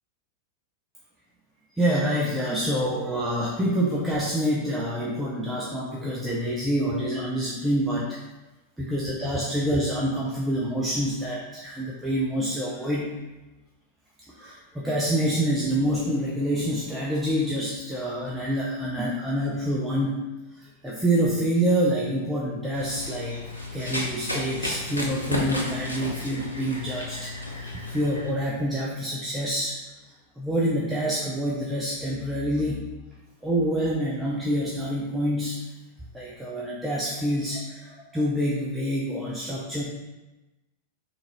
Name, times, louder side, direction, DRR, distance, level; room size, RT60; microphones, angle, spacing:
voice 1, 1.7-8.2 8.8-13.1 14.3-20.3 20.5-23.4 23.7-29.8 30.0-32.8 33.4-35.6 36.1-39.8, equal, 10° right, -5 dB, 0.6 m, -27 dB
Run, 22.7-28.3, left 1 dB, 85° left, 0.6 m, -33 dB
3.7 x 3.0 x 3.9 m, 1.1 s
figure-of-eight pair, 90°, 0 cm